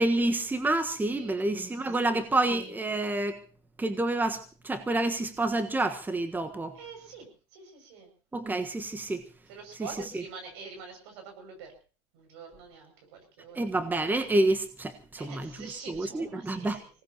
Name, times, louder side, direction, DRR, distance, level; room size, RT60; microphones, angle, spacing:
voice 1, 0.0-3.4 3.8-6.8 8.3-9.3 10.1-10.2 13.5-16.8, right 2 dB, 15° right, 1.4 m, -28 dB
voice 2, 1.0-1.5 2.0-2.3 6.7-8.1 9.5-11.7 12.1-13.7 15.2-16.8, right 5 dB, 80° right, 6.7 m, -46 dB
25.0 x 18.5 x 3.0 m
supercardioid pair, 95°, 14 cm